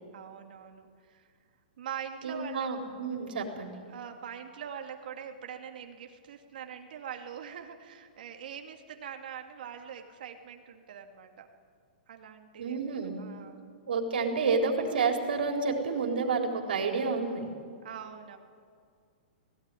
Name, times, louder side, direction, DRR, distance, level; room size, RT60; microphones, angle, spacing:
voice 1, 0.1-1.3 1.8-2.7 3.9-11.5 12.1-13.7 17.8-18.4, right 8 dB, 65° right, 4 dB, 2.4 m, -43 dB
voice 2, 2.2-3.8 12.6-13.2 13.9-17.5, right 4 dB, 85° right, 2 dB, 4.0 m, -29 dB
19.5 x 17.0 x 10.0 m, 2.1 s
hypercardioid pair, 170°, 5 cm